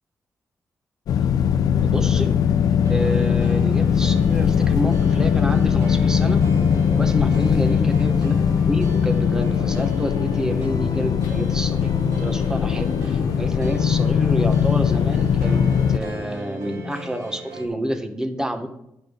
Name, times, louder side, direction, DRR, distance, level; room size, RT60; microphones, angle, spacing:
sound 1, 1.1-16.0, left 7 dB, 90° left, 0.5 m, -20 dB
voice 1, 1.8-2.4 2.9-6.4 6.9-18.7, equal, 10° right, 7 dB, 1.2 m, -29 dB
sound 2, 2.8-17.7, equal, 80° right, 3.4 m, -34 dB
10.0 x 5.4 x 6.4 m, 0.82 s
cardioid pair, 100°, 6 cm